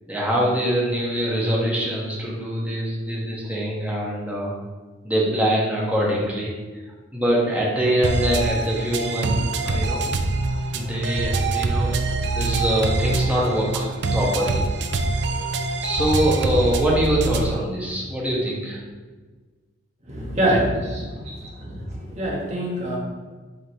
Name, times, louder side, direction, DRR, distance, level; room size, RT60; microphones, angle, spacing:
voice 1, 0.1-4.5 5.0-6.5 7.1-10.0 10.7-11.9 12.3-14.7 15.8-18.8, equal, 10° right, -5 dB, 1.4 m, -23 dB
sound 1, 8.0-17.6, right 3 dB, 60° right, 0.5 m, -24 dB
voice 2, 20.1-21.8 22.1-23.0, right 1 dB, 35° right, -3 dB, 1.5 m, -25 dB
7.8 x 4.0 x 3.0 m, 1.4 s
head